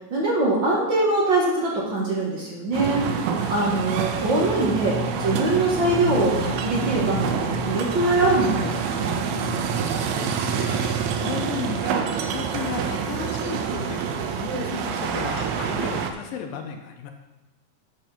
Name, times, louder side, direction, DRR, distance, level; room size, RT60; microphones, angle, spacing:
voice 1, 0.1-9.2, right 2 dB, 45° right, -4 dB, 1.8 m, -23 dB
sound 1, 2.7-16.1, right 7 dB, 85° right, 2.6 m, -27 dB
sound 2, 3.5-11.2, left 8 dB, 50° left, 2.3 m, -36 dB
voice 2, 10.0-17.1, left 7 dB, 85° left, 5 dB, 2.6 m, -34 dB
11.5 x 6.2 x 4.4 m, 1.0 s
omnidirectional pair, 4.0 m